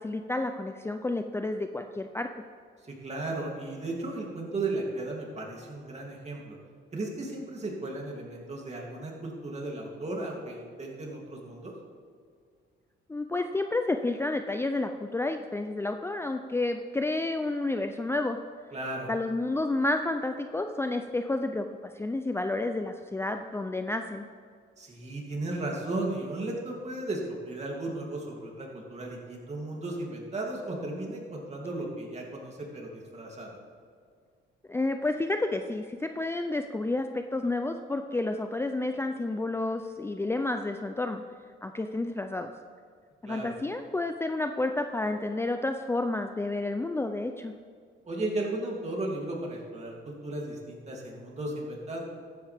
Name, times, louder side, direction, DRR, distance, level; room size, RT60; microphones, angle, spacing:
voice 1, 0.0-2.3 13.1-18.4 19.1-24.3 34.7-41.2 41.6-42.5 43.2-47.5, left 2 dB, 10° left, 6 dB, 0.5 m, -30 dB
voice 2, 3.0-6.6 6.9-11.7 18.7-19.1 24.8-33.5 43.2-43.5 48.0-52.0, right 2 dB, 35° right, -1 dB, 3.0 m, -35 dB
14.5 x 10.5 x 3.6 m, 2.1 s
cardioid pair, 90°, 20 cm